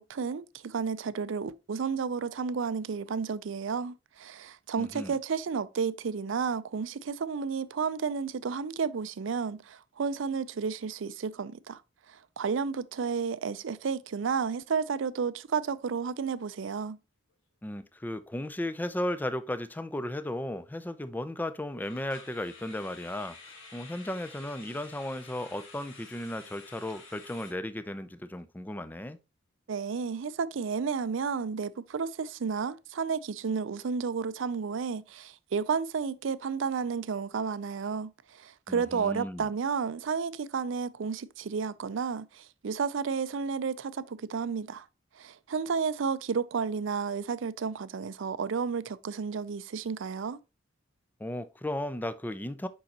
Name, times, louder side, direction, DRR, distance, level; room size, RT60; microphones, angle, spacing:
voice 1, 0.0-11.8 12.1-17.0 29.7-44.8 45.2-50.4, right 5 dB, 70° right, 0.4 m, -32 dB
voice 2, 4.8-5.1 17.6-29.2 38.7-39.5 51.2-52.7, left 1 dB, 10° left, 0.4 m, -35 dB
sound 1, 15.6-15.9 16.2-16.4 16.8-16.9 21.8-27.5, left 3 dB, 65° left, 1.7 m, -50 dB
6.5 x 5.5 x 2.8 m
head